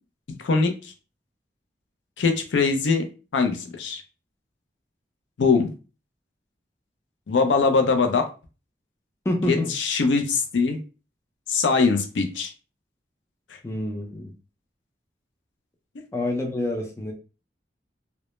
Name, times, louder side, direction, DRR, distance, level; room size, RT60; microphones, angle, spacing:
voice 1, 0.4-0.9 2.2-3.0 3.3-4.0 5.4-5.7 7.3-8.3 9.5-10.8 11.5-12.5, left 4 dB, 85° left, 6 dB, 0.4 m, -22 dB
voice 2, 9.3-9.7 13.6-14.3 16.1-17.1, left 1 dB, 15° left, 1 dB, 0.4 m, -27 dB
2.1 x 2.0 x 2.9 m, 0.33 s
head